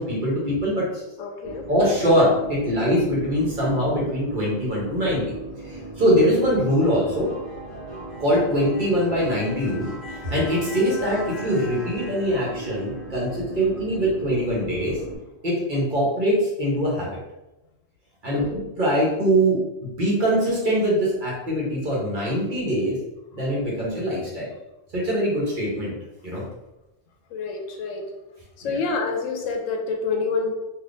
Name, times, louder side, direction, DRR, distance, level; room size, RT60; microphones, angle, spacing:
voice 1, 0.0-1.0 1.7-5.2 5.6-7.3 8.2-15.0 15.4-17.1 18.2-18.4 18.8-23.0 23.3-24.5 24.9-25.9 26.2-26.4 28.6-28.8, equal, 45° right, -5 dB, 1.1 m, -23 dB
voice 2, 1.2-1.7 18.3-18.6 27.3-28.0 28.6-30.5, left 4 dB, 85° left, 3 dB, 1.0 m, -27 dB
sound 1, 1.4-15.2, right 2 dB, 10° left, 1.4 m, -37 dB
3.4 x 2.6 x 2.5 m, 0.97 s
omnidirectional pair, 1.3 m